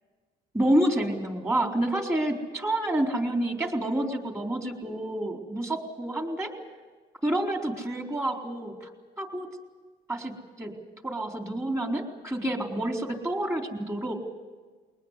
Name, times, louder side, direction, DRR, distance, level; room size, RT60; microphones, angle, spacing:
voice 1, 0.5-6.5 7.2-8.9 9.2-9.5 10.1-10.3 10.6-10.7 11.0-14.2, right 1 dB, 15° right, 3 dB, 4.2 m, -28 dB
22.5 x 19.0 x 8.3 m, 1.4 s
cardioid pair, 110°, 17 cm